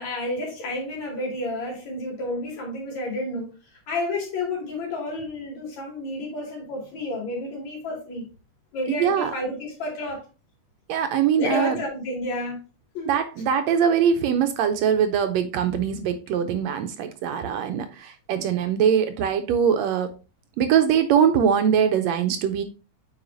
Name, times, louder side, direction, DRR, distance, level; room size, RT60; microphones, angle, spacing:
voice 1, 0.0-3.5 3.9-8.3 8.7-10.2 11.3-12.6 13.0-13.1, left 2 dB, 70° left, 3.7 m, -30 dB
voice 2, 9.0-9.3 10.9-11.8 13.1-20.1 20.6-22.6, right 8 dB, 75° right, 1.7 m, -22 dB
8.0 x 5.0 x 2.6 m
omnidirectional pair, 3.3 m